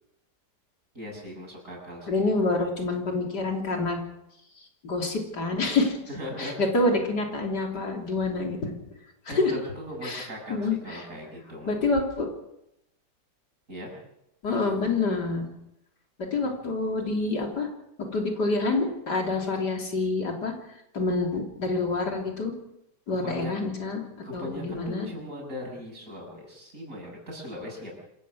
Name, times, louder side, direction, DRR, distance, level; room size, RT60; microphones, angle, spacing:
voice 1, 0.9-2.2 6.1-6.6 9.3-11.8 13.7-13.9 16.4-16.5 23.1-23.5 24.2-28.0, left 1 dB, 50° right, 0 dB, 7.5 m, -39 dB
voice 2, 2.1-4.0 4.8-6.0 6.4-8.7 9.3-9.5 10.0-11.1 11.7-12.3 14.4-15.5 16.2-17.7 18.0-20.5 20.9-22.5 23.1-24.0 24.3-25.1, left 3 dB, 80° left, 2 dB, 4.0 m, -27 dB
26.5 x 15.5 x 6.4 m, 0.82 s
omnidirectional pair, 1.8 m